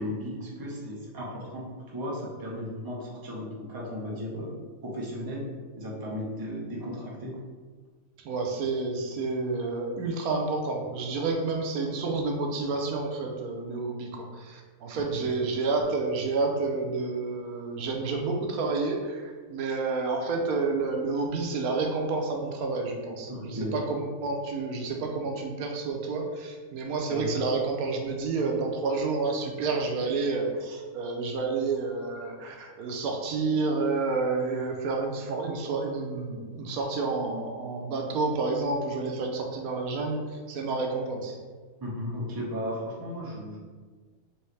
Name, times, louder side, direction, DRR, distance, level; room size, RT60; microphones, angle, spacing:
voice 1, 0.0-7.3 14.9-15.3 23.3-23.8 27.1-27.3 41.8-43.6, equal, 20° right, -4 dB, 0.7 m, -35 dB
voice 2, 8.2-41.4, right 3 dB, 85° right, 2 dB, 1.1 m, -29 dB
4.5 x 3.0 x 3.2 m, 1.5 s
omnidirectional pair, 1.5 m